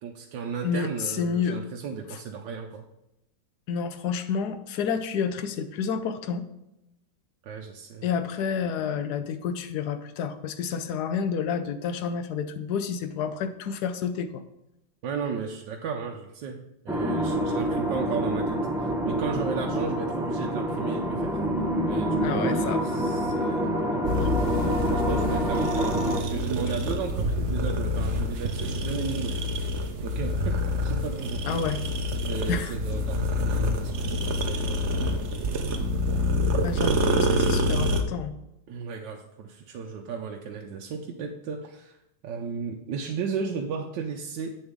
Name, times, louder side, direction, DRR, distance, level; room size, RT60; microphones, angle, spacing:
voice 1, 0.0-2.8 7.4-8.1 15.0-21.4 21.9-24.3 24.9-29.4 30.0-31.7 32.1-34.9 36.4-37.6 38.7-42.0 42.2-44.5, right 5 dB, 75° right, 2 dB, 1.3 m, -35 dB
voice 2, 0.6-1.6 3.7-6.4 8.0-14.4 22.2-22.8 31.5-31.8 32.5-32.7 36.6-38.3, left 6 dB, 70° left, 10 dB, 1.2 m, -29 dB
sound 1, 16.9-26.2, equal, 5° right, 0.5 m, -27 dB
sound 2, 24.0-38.0, left 1 dB, 55° right, 0.8 m, -27 dB
8.1 x 7.0 x 3.6 m, 0.89 s
omnidirectional pair, 2.0 m